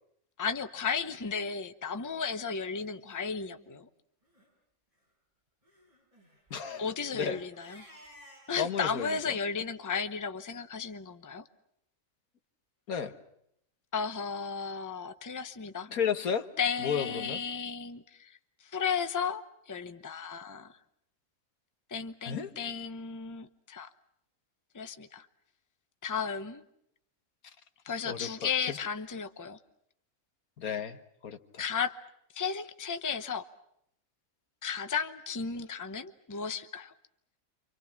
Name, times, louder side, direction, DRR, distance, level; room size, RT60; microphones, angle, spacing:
voice 1, 0.4-3.9 6.8-7.8 8.5-11.5 13.9-15.9 16.6-20.7 21.9-23.9 24.7-25.3 26.0-26.6 27.8-29.6 31.6-32.0 32.3-33.4 34.6-36.9, left 6 dB, 15° left, 10 dB, 0.8 m, -34 dB
Crying sobbing, 1.8-2.1 2.7-2.8 3.1-3.2 3.6-3.8 4.2-4.5 5.6-8.7, equal, 20° right, 7.7 m, -57 dB
voice 2, 6.5-6.8 7.1-7.4 8.6-9.2 12.9-13.1 15.9-16.5 16.8-17.4 22.2-22.5 28.1-28.8 30.6-31.6, left 7 dB, 85° left, 9 dB, 1.8 m, -33 dB
29.0 x 26.0 x 5.9 m, 0.74 s
omnidirectional pair, 1.5 m